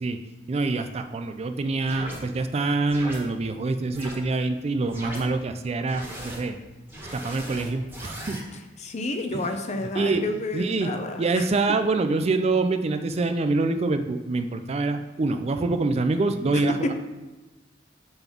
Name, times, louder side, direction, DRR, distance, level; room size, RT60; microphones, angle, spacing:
voice 1, 0.5-6.6 7.1-8.4 9.3-9.4 9.9-10.3 10.5-10.9 11.2-16.9, right 3 dB, 35° right, 8 dB, 0.4 m, -25 dB
sound 1, 1.9-2.2 2.9-3.2 3.9-4.1 4.9-5.2 5.9-6.4 6.9-8.4, equal, 10° right, 1.4 m, -38 dB
voice 2, 8.8-11.5 16.5-16.9, left 2 dB, 40° left, 6 dB, 0.6 m, -30 dB
5.3 x 3.8 x 5.9 m, 1.1 s
head